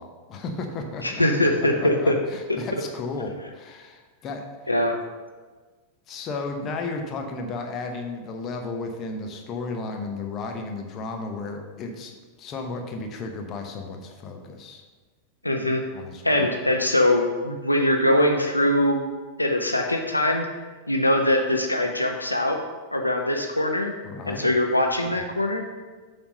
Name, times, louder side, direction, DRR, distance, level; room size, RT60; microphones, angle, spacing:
voice 1, 0.0-1.2 1.8-4.4 6.1-14.8 15.9-16.5 24.0-24.5, left 3 dB, 30° left, 3 dB, 0.9 m, -34 dB
voice 2, 1.0-2.1 4.7-4.9 15.4-15.8 16.2-19.0 19.4-20.5 20.9-22.6 22.9-23.9 24.3-25.6, left 1 dB, 85° left, 3 dB, 0.5 m, -22 dB
7.0 x 3.5 x 5.2 m, 1.4 s
figure-of-eight pair, 90°, 0 cm